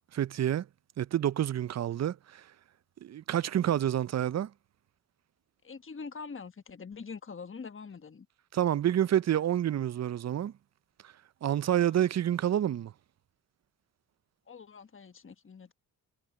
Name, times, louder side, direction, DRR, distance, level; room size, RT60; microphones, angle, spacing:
voice 1, 0.1-0.7 1.0-2.4 3.0-4.5 8.5-10.5 11.4-12.9, right 11 dB, 40° right, 0.5 m, -28 dB
voice 2, 5.6-8.3 11.8-11.9 14.5-15.7, left 5 dB, 30° left, 1.2 m, -44 dB
supercardioid pair, 50°, 42 cm